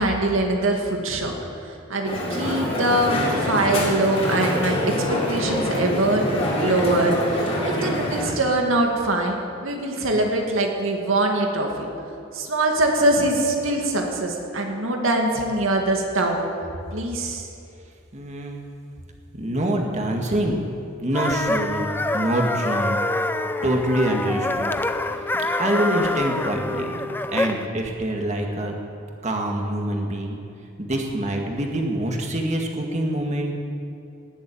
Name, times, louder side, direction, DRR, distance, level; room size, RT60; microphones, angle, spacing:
voice 1, 0.0-1.3 1.9-11.9 12.3-16.4 16.9-17.5, right 2 dB, 75° right, 1 dB, 2.3 m, -23 dB
Crowd, 2.0-8.3, equal, 30° left, 3.1 m, -25 dB
voice 2, 18.1-18.7 19.3-20.7 21.0-23.1 23.6-27.0 27.3-28.8 29.2-30.4 30.8-33.5, right 1 dB, 35° right, 2 dB, 1.9 m, -25 dB
sound 1, 21.1-27.7, left 2 dB, 10° left, 0.5 m, -26 dB
18.5 x 7.8 x 9.2 m, 2.6 s
head